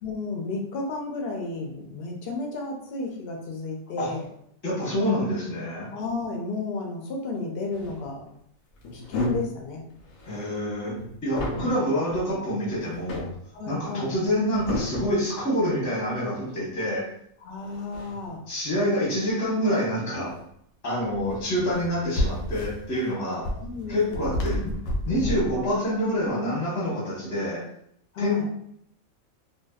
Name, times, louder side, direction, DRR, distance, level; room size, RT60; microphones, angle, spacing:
voice 1, 0.0-4.3 5.9-8.3 8.9-9.9 11.5-11.7 13.5-14.1 17.4-18.5 23.1-24.4 25.2-26.0 28.1-28.4, left 3 dB, 60° left, 1 dB, 0.6 m, -33 dB
voice 2, 4.6-5.9 10.2-13.3 13.7-17.1 18.5-20.4 20.8-23.5 23.9-24.7 25.1-27.7 28.2-28.4, equal, 15° left, -6 dB, 0.6 m, -27 dB
sound 1, 7.7-8.0 8.8-9.6 9.9-11.7 12.1-12.3 12.7-13.4 14.2-15.2 17.6-18.5 20.3-20.5 21.0-25.7, left 1 dB, 80° left, 1.0 m, -32 dB
2.5 x 2.2 x 2.2 m, 0.71 s
omnidirectional pair, 1.4 m